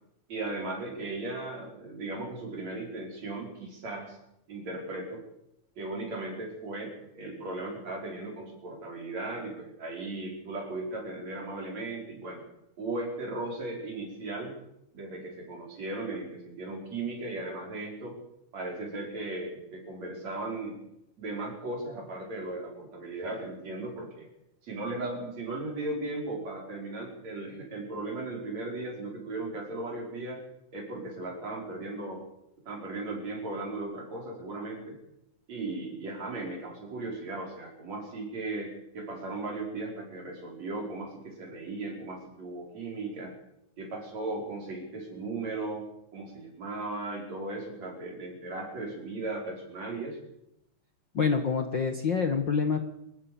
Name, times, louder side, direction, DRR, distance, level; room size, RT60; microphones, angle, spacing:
voice 1, 0.3-4.2 4.5-5.2 5.8-12.4 12.8-14.5 14.9-18.2 18.5-20.8 21.2-24.3 24.6-30.4 30.7-32.2 32.7-35.0 35.5-43.3 43.8-45.9 46.1-50.2, right 2 dB, 55° right, 0 dB, 6.3 m, -37 dB
voice 2, 51.1-52.8, left 5 dB, 45° left, 6 dB, 1.7 m, -26 dB
25.5 x 15.5 x 7.1 m, 0.81 s
omnidirectional pair, 3.6 m